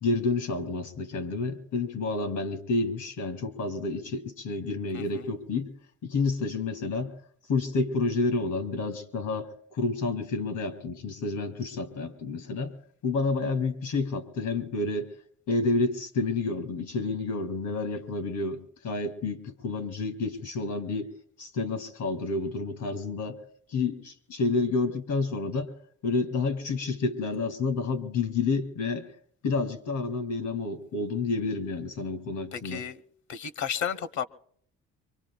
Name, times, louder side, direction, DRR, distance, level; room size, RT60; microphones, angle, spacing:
voice 1, 0.0-5.7 6.0-7.1 7.5-12.7 13.0-15.1 15.5-21.1 21.4-23.4 23.7-25.7 26.0-29.1 29.4-32.8, left 3 dB, 85° left, 2.3 m, -29 dB
voice 2, 4.9-5.2 32.5-33.0 33.3-34.3, left 8 dB, 70° left, 0.9 m, -33 dB
24.5 x 24.0 x 2.3 m
cardioid pair, 90°, 30 cm